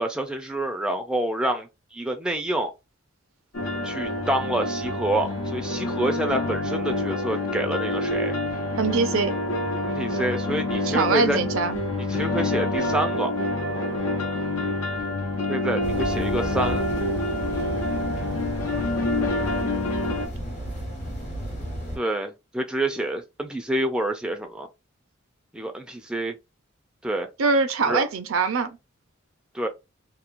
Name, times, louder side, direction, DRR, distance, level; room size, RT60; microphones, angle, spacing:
voice 1, 0.0-2.7 3.8-8.3 9.8-11.4 12.1-13.3 15.5-16.9 22.0-24.7 25.5-26.3 27.0-27.3 27.8-28.1 29.5-29.7, right 1 dB, 5° right, 0.3 m, -27 dB
sound 1, 3.5-20.3, left 2 dB, 85° left, 0.8 m, -27 dB
voice 2, 8.8-9.3 10.9-11.8 27.4-28.8, right 4 dB, 80° right, 0.5 m, -23 dB
sound 2, 15.8-22.0, equal, 35° left, 0.9 m, -33 dB
2.9 x 2.1 x 2.5 m
head